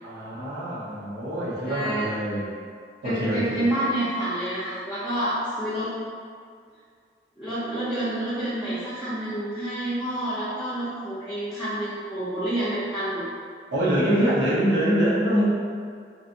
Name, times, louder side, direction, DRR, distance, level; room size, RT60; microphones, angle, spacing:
voice 1, 0.0-2.5 3.0-3.7 13.7-15.4, equal, 90° right, -8 dB, 1.0 m, -24 dB
voice 2, 1.6-2.1 3.0-5.9 7.4-13.3, right 1 dB, ahead, -15 dB, 0.7 m, -28 dB
4.0 x 3.1 x 2.6 m, 2.1 s
head